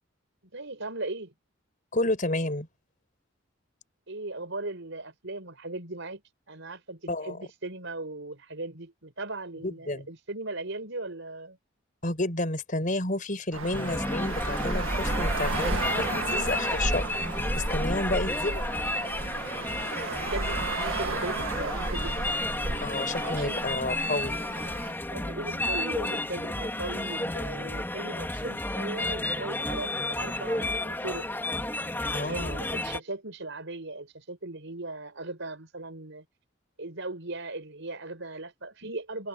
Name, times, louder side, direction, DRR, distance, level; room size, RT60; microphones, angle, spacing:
voice 1, 0.5-1.3 4.1-6.2 6.5-11.6 17.8-18.1 19.9-22.5 23.1-23.7 25.1-31.3 32.0-36.3 36.8-39.3, right 2 dB, 70° right, 5.2 m, -38 dB
voice 2, 1.9-2.7 7.1-7.4 9.6-10.1 12.0-17.1 17.5-18.6 22.8-24.4 32.1-32.6, left 2 dB, 40° left, 5.3 m, -30 dB
Traffic noise roadway noise, 13.5-24.9, right 2 dB, 90° right, 1.8 m, -33 dB
sound 1, 13.7-33.0, left 1 dB, 10° left, 3.5 m, -32 dB
head